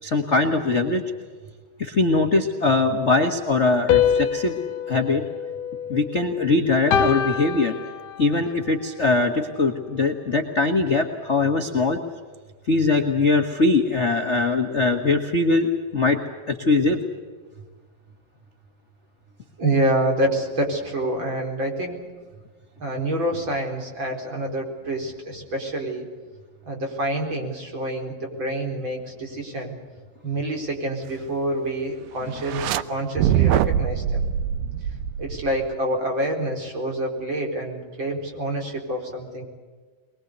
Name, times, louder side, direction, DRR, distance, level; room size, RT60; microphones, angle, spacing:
voice 1, 0.0-1.0 1.8-4.6 4.9-5.2 5.9-7.7 8.2-12.0 12.7-16.2 16.5-17.0, left 3 dB, 45° left, 3 dB, 0.9 m, -21 dB
sound 1, 3.9-6.4 6.9-8.4, left 8 dB, 75° left, 2.5 m, -24 dB
voice 2, 19.6-22.0 22.8-26.1 26.7-29.7 30.2-34.2 35.2-39.4, right 1 dB, 35° right, 1 dB, 4.8 m, -27 dB
sound 2, 32.4-32.8 33.2-35.7, right 10 dB, 80° right, 2.4 m, -23 dB
23.0 x 22.0 x 8.2 m, 1.5 s
omnidirectional pair, 3.9 m